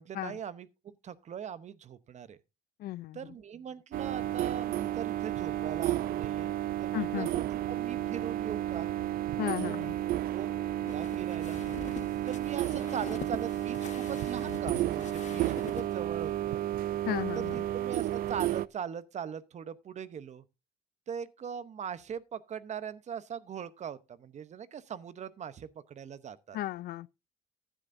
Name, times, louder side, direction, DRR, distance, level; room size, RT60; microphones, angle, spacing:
voice 1, 0.0-2.4 3.1-6.5 6.8-8.9 9.6-9.9 10.3-10.5 10.9-11.6 12.2-16.7 17.3-17.4 17.7-20.4 21.1-26.6, right 8 dB, 45° right, 0.8 m, -40 dB
voice 2, 2.8-3.3 6.9-7.3 9.4-10.0 17.0-17.6 26.5-27.1, left 14 dB, 65° left, 0.5 m, -35 dB
sound 1, 3.9-18.7, right 13 dB, 60° right, 0.5 m, -32 dB
sound 2, 9.6-15.9, left 7 dB, 45° left, 1.1 m, -45 dB
14.5 x 10.0 x 2.6 m
cardioid pair, 110°, 17 cm